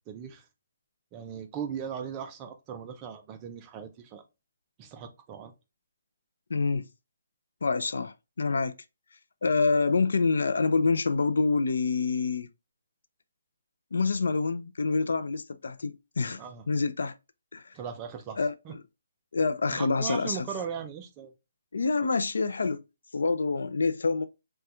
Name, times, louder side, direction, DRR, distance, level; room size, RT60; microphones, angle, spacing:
voice 1, 0.1-0.4 1.1-4.2 4.8-5.5 16.4-16.6 17.7-18.4 18.7-18.8 19.7-21.3, right 7 dB, 15° right, 0.3 m, -38 dB
voice 2, 6.5-6.9 7.6-8.7 9.4-12.5 13.9-17.2 17.5-17.7 18.4-18.5 19.3-20.4 21.7-22.8 23.1-24.2, left 4 dB, 80° left, 0.4 m, -27 dB
4.2 x 2.2 x 2.3 m
hypercardioid pair, 175°, 0 cm